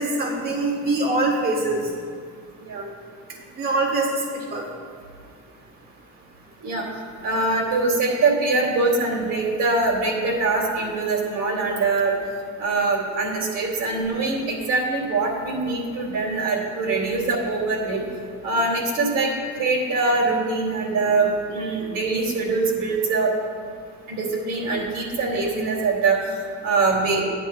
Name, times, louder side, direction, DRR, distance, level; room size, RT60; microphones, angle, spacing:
voice 1, 0.0-1.9 3.6-4.2 4.5-4.7, right 2 dB, 30° right, -2 dB, 1.2 m, -23 dB
voice 2, 7.2-12.1 12.6-18.0 18.4-23.3 24.1-26.2 26.6-27.2, right 3 dB, 80° right, -2 dB, 2.6 m, -23 dB
15.5 x 10.0 x 2.3 m, 2.1 s
cardioid pair, 145°, 31 cm